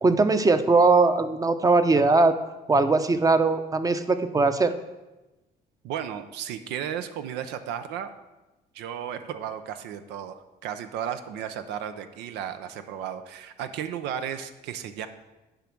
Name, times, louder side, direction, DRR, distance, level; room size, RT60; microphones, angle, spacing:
voice 1, 0.0-2.4 2.7-4.7, right 3 dB, 20° right, 10 dB, 0.7 m, -20 dB
voice 2, 5.8-8.1 8.7-15.1, right 9 dB, 90° right, 9 dB, 0.7 m, -34 dB
10.5 x 5.2 x 6.0 m, 1.1 s
cardioid pair, 110°, 17 cm